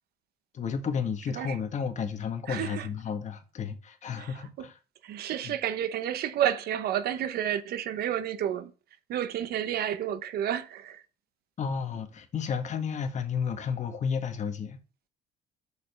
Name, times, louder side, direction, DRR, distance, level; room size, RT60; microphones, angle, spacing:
voice 1, 0.5-4.8 5.4-5.5 11.6-14.8, left 6 dB, 45° left, 1.7 m, -32 dB
voice 2, 2.5-2.9 4.2-4.7 5.0-8.7 9.1-11.0, right 10 dB, 65° right, 0.8 m, -30 dB
6.8 x 5.3 x 6.8 m
cardioid pair, 110°, 17 cm